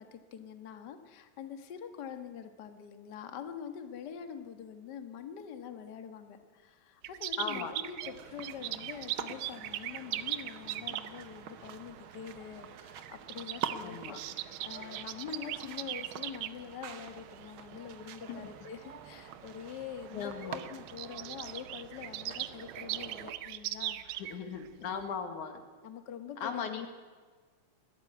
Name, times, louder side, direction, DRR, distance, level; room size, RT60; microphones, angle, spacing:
voice 1, 0.0-24.5 24.8-25.1 25.8-26.6, left 8 dB, 45° left, 8 dB, 1.6 m, -45 dB
sound 1, 7.0-11.3 12.3-12.6 12.8-16.5 17.2-17.5 18.1-18.2 18.5-18.7 19.7-19.8 20.0-20.1 20.3-24.7 25.0-25.1, right 14 dB, 85° right, 2.2 m, -39 dB
voice 2, 7.4-7.7 13.8-14.2 18.3-18.4 20.1-20.6 24.2-25.6 26.4-26.9, left 6 dB, 80° left, 7 dB, 3.3 m, -37 dB
sound 2, 8.0-23.3, right 8 dB, 65° right, 1.3 m, -46 dB
21.0 x 14.5 x 9.4 m, 1.5 s
omnidirectional pair, 3.5 m